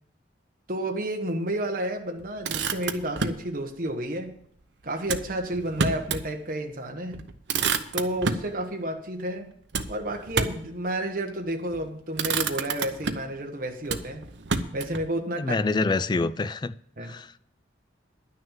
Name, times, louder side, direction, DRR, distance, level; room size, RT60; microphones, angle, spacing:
voice 1, 0.7-4.3 4.8-7.2 7.9-9.5 9.9-14.2 14.7-15.6 17.0-17.1, right 1 dB, 50° right, 1.3 m, -31 dB
Motor vehicle (road), 2.2-3.5 5.0-6.3 6.7-6.8 7.1-8.5 9.7-10.7 11.6-11.8 12.1-13.4 13.9-15.1, right 5 dB, 70° right, 0.8 m, -29 dB
voice 2, 15.4-16.7 17.0-17.4, left 3 dB, 25° left, 0.3 m, -26 dB
10.5 x 6.4 x 7.3 m
head